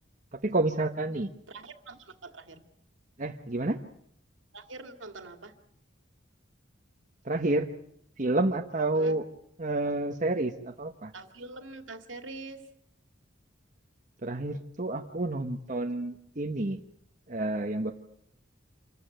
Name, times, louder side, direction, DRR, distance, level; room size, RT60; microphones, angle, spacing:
voice 1, 0.3-1.3 3.2-3.8 7.2-7.7 8.2-9.3 9.6-11.1 14.2-16.8 17.3-17.9, right 2 dB, 40° right, 3 dB, 1.2 m, -29 dB
voice 2, 1.5-2.6 4.5-5.5 8.9-9.2 11.1-12.7, right 3 dB, 80° right, 7 dB, 2.4 m, -44 dB
27.0 x 14.0 x 9.2 m, 0.72 s
head